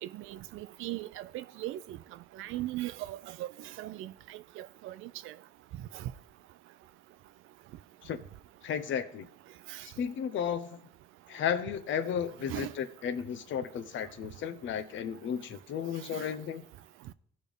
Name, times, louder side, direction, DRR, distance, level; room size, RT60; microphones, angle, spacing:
voice 1, 0.0-2.0 2.4-3.5 3.8-5.3 5.9-6.1 9.7-9.8 12.5-12.7 16.1-16.3, right 15 dB, 90° right, 0.5 m, -39 dB
voice 2, 8.6-9.3 9.8-10.9 11.3-16.7, left 8 dB, 70° left, 0.8 m, -34 dB
15.5 x 5.3 x 3.6 m
cardioid pair, 90°, 20 cm